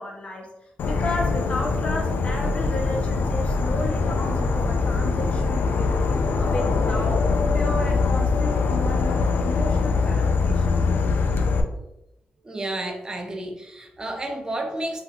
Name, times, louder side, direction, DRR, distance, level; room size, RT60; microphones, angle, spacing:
voice 1, 0.0-6.0 6.4-10.8, left 2 dB, 40° left, 0 dB, 0.7 m, -33 dB
Insect / Frog, 0.8-11.6, left 4 dB, 80° left, 0.3 m, -23 dB
voice 2, 12.4-15.0, right 1 dB, 20° right, 3 dB, 0.4 m, -31 dB
2.8 x 2.1 x 3.7 m, 0.89 s
wide cardioid pair, 125°, 3 cm